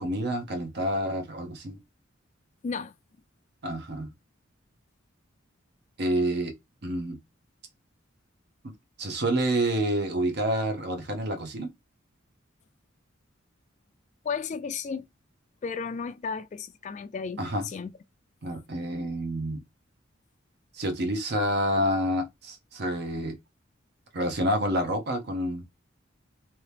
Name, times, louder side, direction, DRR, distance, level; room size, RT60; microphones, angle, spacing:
voice 1, 0.0-1.8 3.6-4.1 6.0-6.5 6.8-7.2 9.0-11.7 17.4-17.6 18.4-19.6 20.7-23.4 24.1-25.6, right 1 dB, 55° right, 0.8 m, -28 dB
voice 2, 14.2-15.1 15.6-17.9, left 5 dB, 35° left, 0.3 m, -34 dB
2.9 x 2.8 x 3.3 m
head